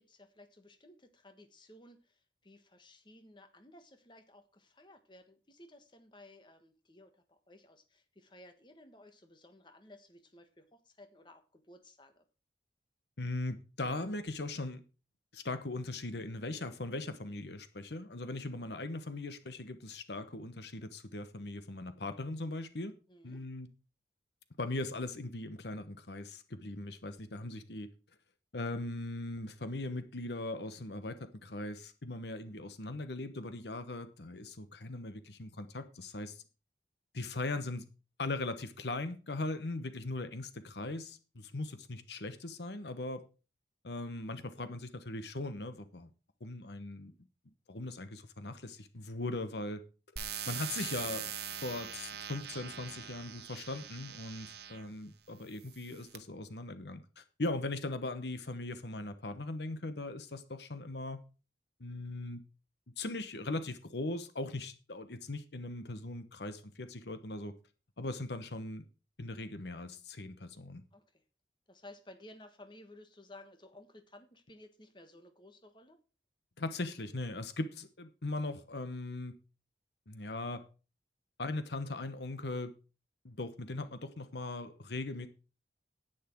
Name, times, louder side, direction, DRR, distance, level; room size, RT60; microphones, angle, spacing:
voice 1, 0.0-12.2 23.1-23.4 70.9-71.2 71.7-76.0, left 1 dB, 25° left, 1.4 m, -56 dB
voice 2, 13.2-14.8 15.3-22.9 23.2-23.7 24.6-27.9 28.5-31.2 31.4-36.4 37.1-37.9 38.2-43.2 43.8-46.1 46.4-47.1 47.7-49.8 50.5-51.3 51.6-61.2 61.8-62.4 63.0-67.5 68.0-68.9 69.2-70.8 76.6-79.3 80.1-80.6 81.4-82.7 83.2-85.3, left 2 dB, 70° left, 1.1 m, -39 dB
sound 1, 50.2-54.9 55.6-56.2, right 9 dB, 65° right, 1.1 m, -42 dB
10.5 x 9.3 x 4.6 m
head